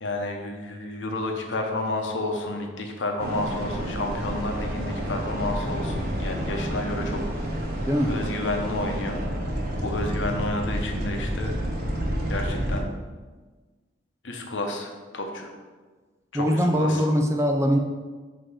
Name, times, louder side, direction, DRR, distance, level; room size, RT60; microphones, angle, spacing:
voice 1, 0.0-7.7 8.1-9.2 9.8-11.5 12.3-12.8 14.2-15.5 16.3-17.0, left 2 dB, 85° left, 2 dB, 0.9 m, -31 dB
sound 1, 3.2-12.8, right 1 dB, 55° right, 1.0 m, -29 dB
voice 2, 7.8-8.2 16.3-17.8, equal, 15° right, 3 dB, 0.5 m, -22 dB
7.6 x 2.9 x 4.8 m, 1.4 s
head